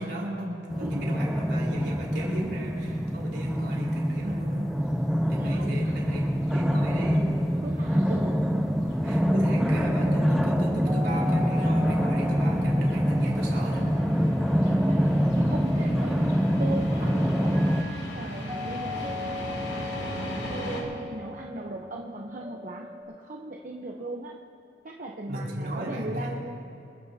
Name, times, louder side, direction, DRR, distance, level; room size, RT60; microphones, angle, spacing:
voice 1, 0.0-4.7 5.3-7.3 9.0-14.3 25.3-26.4, right 1 dB, 70° right, -3 dB, 4.5 m, -35 dB
sound 1, 0.7-17.8, equal, ahead, 0.6 m, -25 dB
sound 2, 3.4-20.8, left 1 dB, 70° left, 2.6 m, -41 dB
voice 2, 5.4-6.1 6.9-7.0 7.6-8.5 14.5-20.2 20.5-24.3 24.8-26.5, right 2 dB, 50° right, -1 dB, 0.9 m, -38 dB
sound 3, 8.5-23.0, left 2 dB, 25° right, 2.0 m, -41 dB
26.5 x 14.5 x 2.8 m, 2.8 s
head